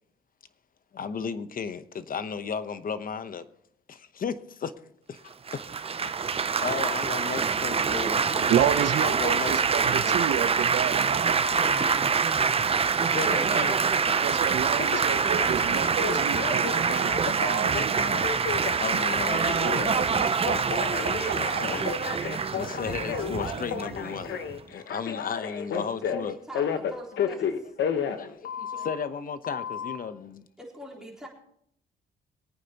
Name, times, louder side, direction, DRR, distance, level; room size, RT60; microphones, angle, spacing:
voice 1, 0.9-3.4 3.9-4.7 5.1-5.3 6.0-6.1 6.6-8.7 9.0-10.2 13.0-13.8 17.6-17.9 18.8-22.0 22.4-24.4 24.7-26.4 28.2-30.5, left 6 dB, 45° left, 0.9 m, -35 dB
Laughter / Applause / Chatter, 5.5-24.6, right 6 dB, 30° right, 0.6 m, -25 dB
voice 2, 8.4-11.7 14.2-17.7 19.3-19.4 20.0-20.3, right 10 dB, 65° right, 0.7 m, -30 dB
Telephone, 11.4-12.0 14.8-29.0 29.4-30.0, left 7 dB, 65° left, 1.2 m, -33 dB
voice 3, 26.1-27.8 30.6-31.3, equal, 5° right, 3.9 m, -44 dB
23.0 x 9.2 x 3.0 m
cardioid pair, 90°, 20 cm